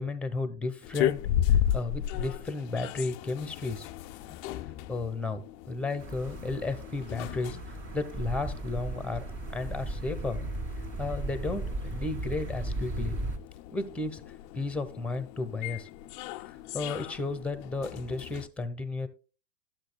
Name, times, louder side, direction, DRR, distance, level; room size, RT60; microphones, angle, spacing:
voice 1, 0.0-3.9 4.9-9.2 9.5-10.4 11.0-13.2 13.7-15.9 16.7-19.1, left 3 dB, 5° left, 9 dB, 0.9 m, -33 dB
sound 1, 0.8-18.5, left 11 dB, 40° left, 0.5 m, -35 dB
sound 2, 6.0-13.4, right 2 dB, 35° right, 2.0 m, -36 dB
11.5 x 7.7 x 2.2 m, 0.34 s
hypercardioid pair, 115°, 38 cm